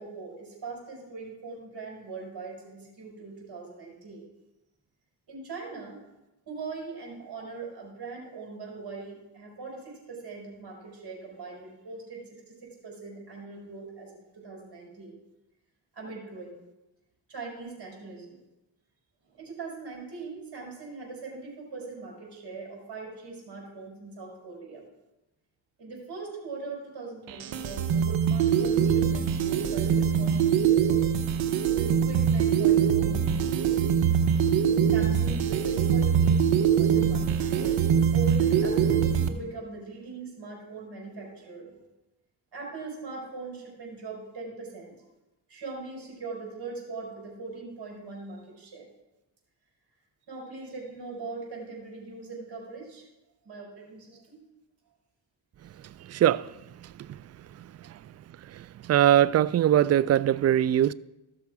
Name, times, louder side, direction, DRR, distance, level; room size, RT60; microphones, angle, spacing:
voice 1, 0.0-4.3 5.3-6.0 6.4-15.2 15.9-16.6 17.3-18.4 19.3-24.8 25.8-31.1 31.7-33.8 34.9-37.8 38.1-41.9 42.5-44.9 45.5-48.8 50.3-53.1 53.4-54.4 56.2-56.3, right 4 dB, 60° right, -2 dB, 4.6 m, -41 dB
sound 1, 27.3-39.3, right 8 dB, 85° right, 0.9 m, -23 dB
voice 2, 58.9-60.9, right 11 dB, 35° right, 21 dB, 0.4 m, -20 dB
14.0 x 6.3 x 4.8 m, 0.98 s
supercardioid pair, 55°, 45 cm